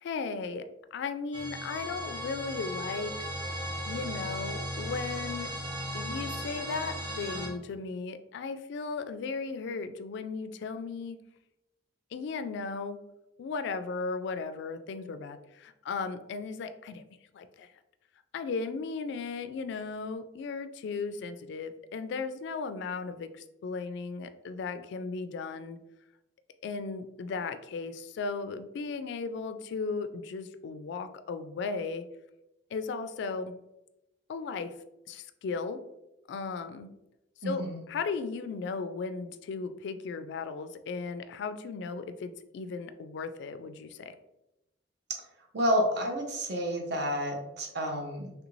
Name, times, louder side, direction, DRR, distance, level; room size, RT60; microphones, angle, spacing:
voice 1, 0.0-3.2 3.9-5.5 5.9-11.2 12.1-13.0 13.4-17.0 17.3-17.7 18.3-25.8 26.6-32.0 32.7-33.5 34.3-34.7 35.1-35.8 36.3-36.9 37.5-37.6 37.9-44.1, left 4 dB, 65° left, 10 dB, 0.3 m, -36 dB
sound 1, 1.3-7.5, equal, 25° right, 0.8 m, -36 dB
voice 2, 37.4-37.8 45.5-48.3, equal, 60° right, 1 dB, 0.7 m, -30 dB
3.3 x 2.5 x 3.0 m, 0.90 s
head